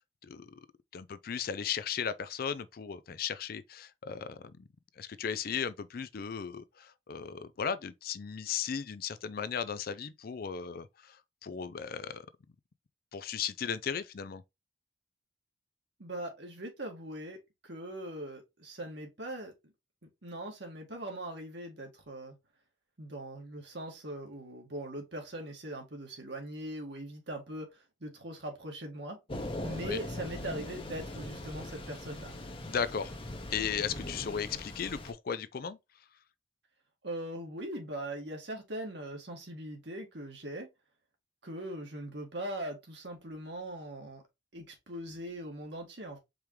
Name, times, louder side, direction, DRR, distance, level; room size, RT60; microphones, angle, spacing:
voice 1, 0.9-4.7 5.0-12.3 13.1-14.4 29.8-30.0 32.7-33.1 33.5-35.8, left 7 dB, 50° left, 0.4 m, -36 dB
voice 2, 16.0-17.4 17.6-19.7 20.2-22.4 23.0-29.2 29.6-32.4 37.0-40.7 41.4-44.2 44.5-46.2, right 1 dB, 60° right, 1.8 m, -41 dB
Thunder / Rain, 29.3-35.1, left 1 dB, 30° left, 0.9 m, -41 dB
4.8 x 3.6 x 3.0 m
head